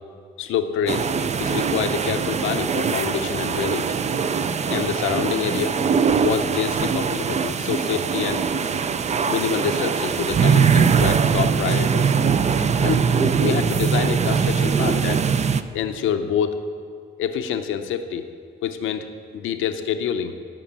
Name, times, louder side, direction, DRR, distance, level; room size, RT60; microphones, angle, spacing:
voice 1, 0.4-1.1 1.4-3.9 4.7-5.8 6.2-8.4 9.3-12.2 12.8-15.3 15.7-16.6 17.2-18.2 18.6-19.1 19.3-20.3, left 8 dB, 85° left, 8 dB, 0.7 m, -26 dB
sound 1, 0.9-15.6, right 6 dB, 35° right, 0.5 m, -21 dB
12.0 x 5.9 x 7.4 m, 2.3 s
cardioid pair, 90°, 20 cm